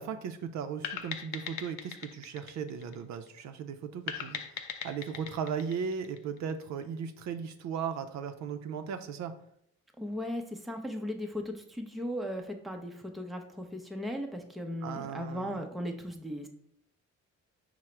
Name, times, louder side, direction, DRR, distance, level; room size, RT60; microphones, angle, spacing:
voice 1, 0.0-9.3 14.8-15.7, right 6 dB, 65° right, 8 dB, 0.4 m, -37 dB
sound 1, 0.8-3.4 4.1-6.6, left 8 dB, 70° left, 0.5 m, -40 dB
voice 2, 10.0-16.5, equal, ahead, 3 dB, 0.5 m, -37 dB
4.6 x 2.0 x 4.3 m, 0.70 s
cardioid pair, 90°, 30 cm